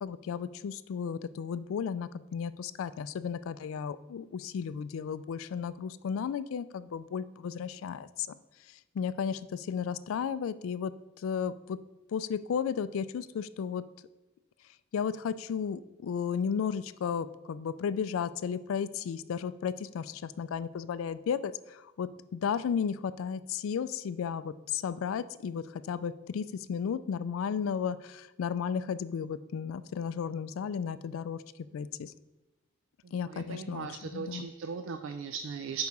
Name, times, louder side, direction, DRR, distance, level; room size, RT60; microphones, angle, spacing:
voice 1, 0.0-8.4 8.7-10.9 11.2-11.8 12.1-13.8 14.9-31.4 31.7-32.1 33.1-34.5, left 7 dB, 80° left, 15 dB, 0.3 m, -34 dB
voice 2, 33.3-35.9, right 5 dB, 70° right, 8 dB, 0.3 m, -37 dB
4.7 x 4.6 x 5.3 m, 1.0 s
head